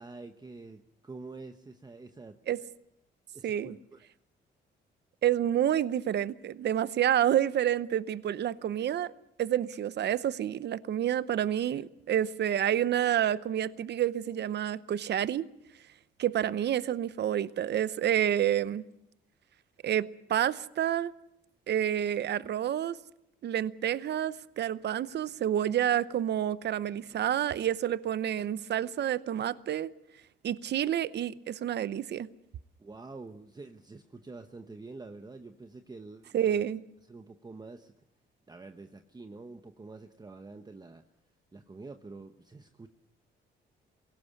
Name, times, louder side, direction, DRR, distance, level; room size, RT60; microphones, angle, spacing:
voice 1, 0.0-2.4 3.3-4.1 32.8-36.7 37.1-37.9 38.5-41.1 41.5-42.9, right 3 dB, 20° right, 1.0 m, -47 dB
voice 2, 3.4-3.7 5.2-9.1 9.4-15.5 16.2-18.8 19.8-21.1 21.7-23.0 23.4-29.9 30.4-32.3 36.3-36.8, right 10 dB, 60° right, 0.8 m, -29 dB
22.0 x 17.5 x 8.3 m
cardioid pair, 90°, 20 cm